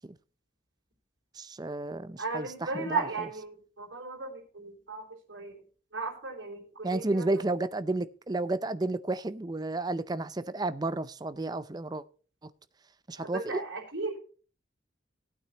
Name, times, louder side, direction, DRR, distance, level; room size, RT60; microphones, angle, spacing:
voice 1, 1.4-3.3 6.8-12.0 13.1-13.6, right 2 dB, 20° right, 0.5 m, -32 dB
voice 2, 2.2-5.6 5.9-7.2 13.2-14.2, right 3 dB, 80° right, 3.6 m, -36 dB
17.5 x 8.8 x 2.9 m
head